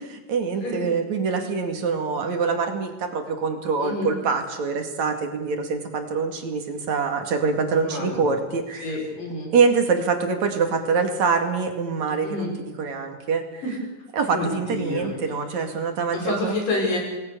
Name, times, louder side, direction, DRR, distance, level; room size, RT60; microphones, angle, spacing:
voice 1, 0.3-8.9 9.5-12.5 12.8-13.6 14.1-16.8, right 5 dB, 60° right, 5 dB, 3.5 m, -25 dB
voice 2, 3.8-4.1 7.8-8.3 8.8-9.5 12.2-12.6 13.6-13.8 14.3-15.1 16.1-17.0, left 2 dB, 85° left, -1 dB, 8.5 m, -28 dB
27.5 x 20.0 x 6.9 m, 1.1 s
omnidirectional pair, 3.8 m